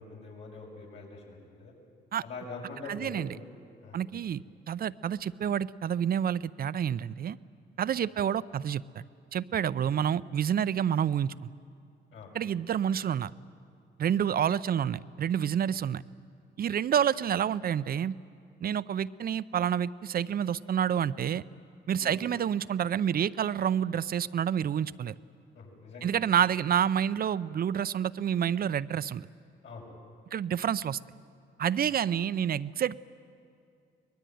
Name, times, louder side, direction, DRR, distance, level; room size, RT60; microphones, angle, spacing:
voice 1, 0.0-1.7 2.2-3.4 3.8-4.0 9.8-9.9 12.1-12.3 21.9-22.1 25.5-26.1 29.6-29.9 31.9-32.0, left 3 dB, 75° left, -1 dB, 6.9 m, -44 dB
voice 2, 2.8-3.4 3.9-7.4 7.8-9.0 9.3-11.5 12.3-13.3 14.0-16.0 16.6-18.2 18.6-21.4 21.9-25.1 26.0-29.3 30.3-31.0 31.6-33.0, right 9 dB, 50° right, 17 dB, 0.6 m, -28 dB
24.0 x 20.5 x 9.3 m, 2.4 s
cardioid pair, 90°, 20 cm